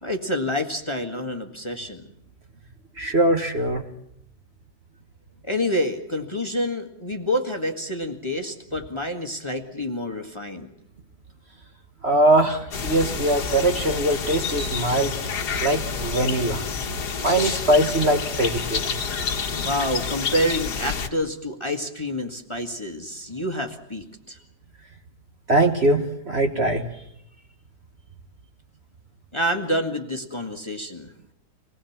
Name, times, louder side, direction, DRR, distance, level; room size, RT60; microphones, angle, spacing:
voice 1, 0.0-2.0 5.4-10.7 19.5-24.4 29.3-31.1, equal, 15° left, 4 dB, 1.7 m, -28 dB
voice 2, 3.0-3.8 12.0-15.1 15.6-16.6 17.2-18.9 25.5-26.9, right 1 dB, 40° right, 5 dB, 1.7 m, -21 dB
sound 1, 12.7-21.1, left 5 dB, 65° left, 2.0 m, -28 dB
26.5 x 19.5 x 7.3 m, 0.76 s
omnidirectional pair, 1.9 m